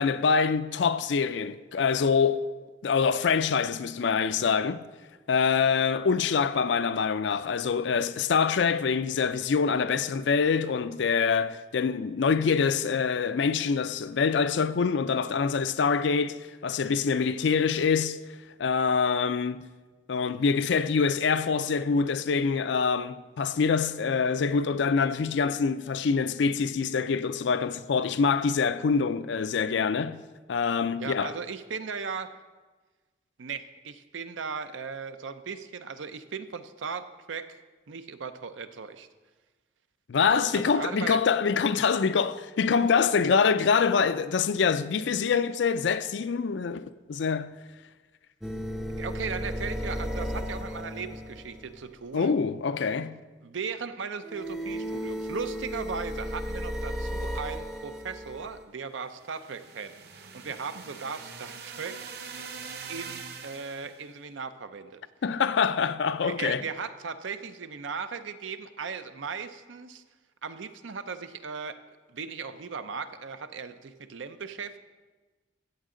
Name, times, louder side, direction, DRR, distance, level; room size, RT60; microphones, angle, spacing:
voice 1, 0.0-2.5 2.8-4.8 5.3-18.2 18.6-19.7 20.1-30.2 30.5-31.3 40.1-47.6 52.1-53.2 65.2-66.6, left 5 dB, 70° left, 0.4 m, -25 dB
voice 2, 31.0-32.3 33.4-37.6 37.9-39.1 40.5-41.2 49.0-52.4 53.4-62.1 62.4-62.6 62.9-65.0 66.2-70.0 70.4-71.8 72.1-74.8, right 5 dB, 90° right, 0.6 m, -37 dB
sound 1, 48.4-51.9 54.2-58.6, equal, ahead, 0.5 m, -34 dB
sound 2, 59.1-64.0, right 5 dB, 55° right, 0.8 m, -43 dB
14.5 x 8.2 x 3.8 m
head